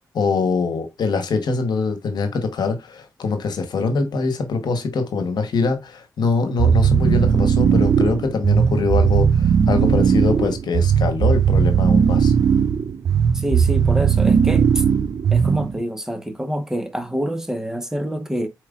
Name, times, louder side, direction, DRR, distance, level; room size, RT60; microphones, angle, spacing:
voice 1, 0.1-12.3, left 4 dB, 80° left, 1.1 m, -23 dB
sound 1, 6.6-15.8, right 7 dB, 60° right, 0.4 m, -17 dB
voice 2, 13.3-14.8 15.3-18.5, equal, 5° right, 1.0 m, -26 dB
4.7 x 4.4 x 2.4 m
cardioid pair, 55°, 7 cm